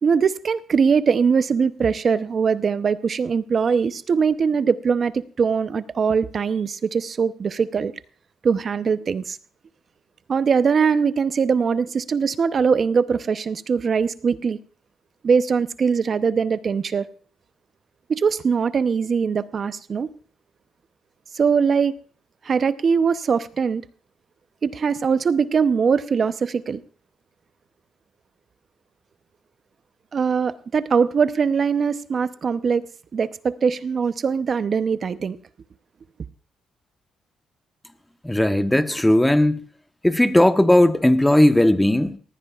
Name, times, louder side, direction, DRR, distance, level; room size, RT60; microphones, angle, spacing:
voice 1, 0.0-7.9 8.4-9.4 10.3-14.6 15.2-17.1 18.1-20.1 21.3-21.9 22.4-23.8 24.6-26.8 30.1-32.8 33.1-35.4, right 6 dB, 45° right, 0.7 m, -21 dB
voice 2, 38.2-39.6 40.0-42.2, left 1 dB, 5° left, 1.1 m, -17 dB
19.0 x 16.0 x 2.4 m
cardioid pair, 90°, 0 cm